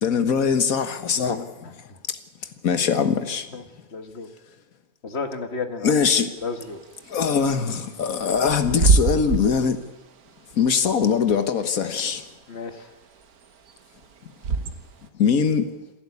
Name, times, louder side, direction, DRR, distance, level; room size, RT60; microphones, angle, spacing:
voice 1, 0.0-1.7 2.1-2.2 2.6-3.5 5.8-6.3 7.1-9.8 10.6-12.3 15.2-15.7, left 6 dB, 70° left, 1.7 m, -22 dB
voice 2, 3.9-4.3 5.0-5.9 6.4-6.8 12.5-12.9, left 4 dB, 45° left, 1.7 m, -32 dB
Bird / Wind, 6.4-15.1, right 4 dB, 85° right, 1.8 m, -27 dB
27.5 x 11.0 x 8.4 m
omnidirectional pair, 1.5 m